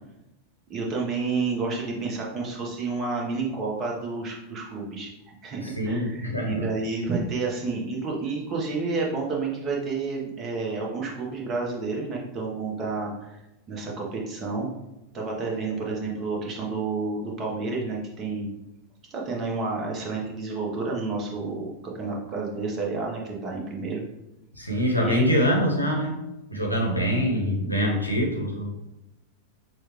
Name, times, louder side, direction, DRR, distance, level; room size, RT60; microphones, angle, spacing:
voice 1, 0.7-13.4 13.7-14.7 15.1-18.5 19.1-24.0 25.0-25.3, right 4 dB, 30° right, -2 dB, 1.2 m, -30 dB
voice 2, 5.6-6.7 24.5-26.2 26.5-28.7, equal, 90° left, -1 dB, 1.0 m, -24 dB
6.1 x 2.4 x 3.1 m, 0.92 s
figure-of-eight pair, 90°, 0 cm